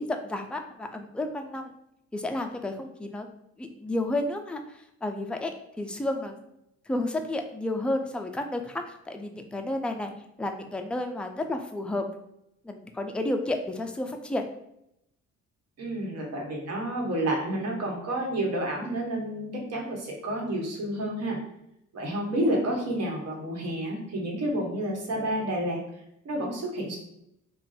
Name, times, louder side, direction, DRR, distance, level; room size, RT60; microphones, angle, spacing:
voice 1, 0.0-1.7 2.1-3.3 3.6-4.6 5.0-5.5 5.8-6.4 6.9-10.1 10.4-12.0 12.6-14.5, left 1 dB, 5° left, 4 dB, 0.3 m, -31 dB
voice 2, 15.8-21.4 21.9-25.8 26.2-27.0, right 1 dB, 55° right, -1 dB, 1.1 m, -30 dB
2.5 x 2.2 x 3.9 m, 0.79 s
cardioid pair, 90°, 30 cm